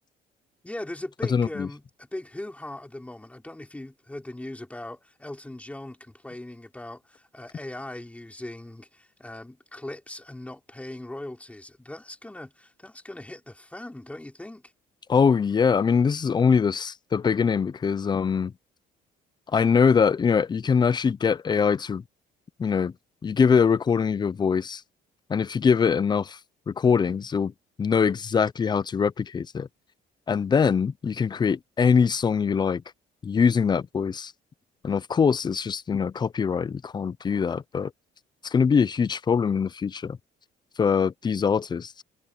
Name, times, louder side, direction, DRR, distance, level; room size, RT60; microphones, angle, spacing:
voice 1, 0.6-14.7, left 1 dB, 10° left, 3.2 m, -39 dB
voice 2, 1.3-1.7 15.1-18.5 19.5-22.0 22.6-22.9 23.2-24.8 25.3-26.4 26.7-27.5 27.8-29.7 30.3-32.8 33.2-34.3 34.8-37.9 38.4-40.2 40.8-42.0, left 6 dB, 25° left, 0.6 m, -23 dB
cardioid pair, 110°, 17 cm